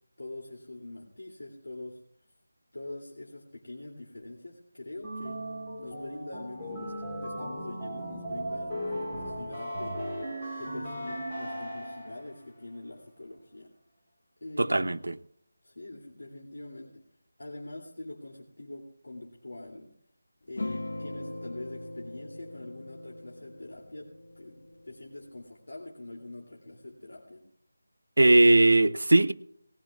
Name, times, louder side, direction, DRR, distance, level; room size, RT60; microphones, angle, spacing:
voice 1, 0.2-2.0 2.7-5.4 5.8-10.0 10.6-13.7 14.4-14.9 15.6-17.0 17.4-19.9 20.5-27.5, left 2 dB, 85° left, 2.8 m, -44 dB
sound 1, 5.0-12.3, equal, 15° left, 4.0 m, -37 dB
voice 2, 14.6-15.2 28.2-29.3, right 2 dB, 85° right, 0.9 m, -20 dB
sound 2, 20.6-25.5, left 2 dB, 70° left, 1.3 m, -41 dB
19.5 x 19.0 x 2.4 m
figure-of-eight pair, 175°, 0 cm